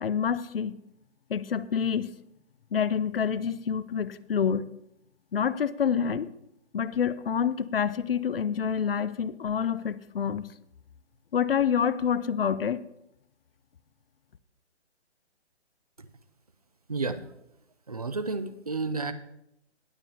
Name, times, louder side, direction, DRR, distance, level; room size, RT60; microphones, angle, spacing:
voice 1, 0.0-0.8 1.3-2.1 2.7-4.7 5.3-6.3 6.7-10.5 11.3-12.8, left 7 dB, 60° left, 18 dB, 0.5 m, -27 dB
voice 2, 17.9-19.1, right 3 dB, 35° right, 11 dB, 0.4 m, -31 dB
18.5 x 7.3 x 2.8 m, 0.82 s
hypercardioid pair, 175°, 34 cm